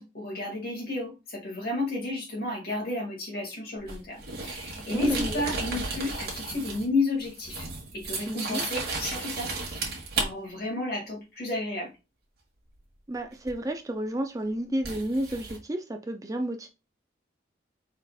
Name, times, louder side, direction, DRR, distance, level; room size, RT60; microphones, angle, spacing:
voice 1, 0.0-7.7 7.9-9.5 9.8-11.9, left 2 dB, 55° left, 2.3 m, -32 dB
sound 1, 3.9-6.9 7.2-10.3 13.5-13.6 14.8-15.6, right 3 dB, 55° right, 1.7 m, -34 dB
voice 2, 4.9-5.4 8.3-8.6 13.1-16.7, right 1 dB, 20° right, 0.4 m, -31 dB
4.9 x 4.3 x 2.4 m
head